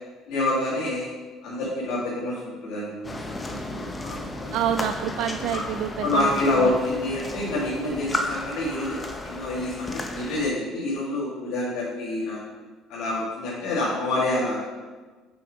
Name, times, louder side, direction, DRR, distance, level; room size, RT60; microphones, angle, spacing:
voice 1, 0.3-1.1 1.4-4.6 5.5-5.6 6.0-12.4 12.9-14.7, left 2 dB, 75° left, -8 dB, 1.9 m, -27 dB
sound 1, 3.0-10.5, left 2 dB, 20° left, 0.7 m, -34 dB
voice 2, 4.5-6.7, right 10 dB, 75° right, 8 dB, 0.3 m, -28 dB
5.9 x 5.0 x 5.1 m, 1.3 s
cardioid pair, 95°, 0 cm